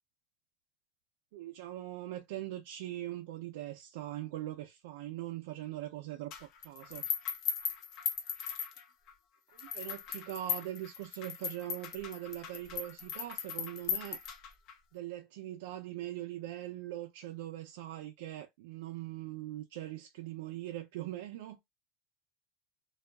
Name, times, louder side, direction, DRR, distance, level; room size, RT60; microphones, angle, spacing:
voice 1, 1.3-7.1 9.5-14.2 14.9-21.6, right 14 dB, 80° right, 0.4 m, -41 dB
sound 1, 6.3-9.1 9.6-14.7, left 7 dB, 50° left, 0.6 m, -38 dB
2.7 x 2.3 x 2.2 m
supercardioid pair, 155°, 0 cm